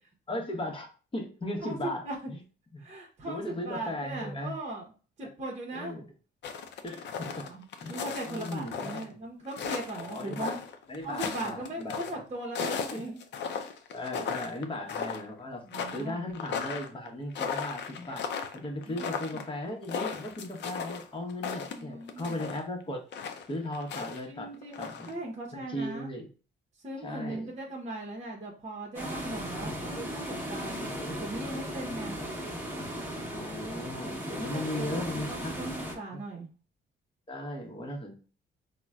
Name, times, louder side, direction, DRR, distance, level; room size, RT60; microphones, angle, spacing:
voice 1, 0.3-2.4 2.7-2.8 3.3-4.5 5.7-6.1 6.8-7.4 7.8-8.0 8.3-9.2 9.9-10.5 10.9-12.2 12.9-13.0 13.9-18.3 18.5-23.0 23.5-25.1 25.5-26.3 27.0-27.5 29.9-30.2 31.0-31.8 33.3-35.5 36.1-36.2 37.3-38.2, left 1 dB, 25° left, 2 dB, 0.9 m, -37 dB
voice 2, 1.6-2.2 2.8-4.9 5.2-6.0 7.2-10.6 11.0-13.2 15.6-16.2 18.9-19.4 21.7-22.4 24.3-26.1 26.8-30.9 31.2-32.2 34.5-36.5, right 2 dB, 35° right, -1 dB, 0.8 m, -39 dB
sound 1, 6.4-9.1 9.5-12.1 12.6-14.6 14.9-15.3 15.7-22.6 23.1-24.2 24.5-25.1, left 6 dB, 65° left, 0.5 m, -36 dB
sound 2, 28.9-35.9, equal, 10° right, 1.0 m, -36 dB
3.9 x 2.2 x 2.3 m, 0.37 s
cardioid pair, 90°, 20 cm